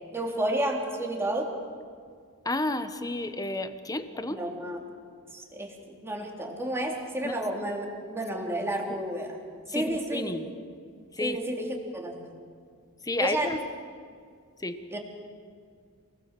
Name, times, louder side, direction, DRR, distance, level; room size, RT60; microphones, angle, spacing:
voice 1, 0.1-1.5 4.3-4.8 5.3-9.3 9.7-10.3 11.2-12.3 13.2-13.6 14.9-15.0, right 1 dB, 10° right, 0 dB, 3.4 m, -31 dB
voice 2, 2.4-4.4 7.2-7.3 9.7-10.5 11.1-11.4 13.0-13.6 14.6-14.8, left 2 dB, 15° left, 10 dB, 1.2 m, -31 dB
28.0 x 20.0 x 7.5 m, 2.2 s
head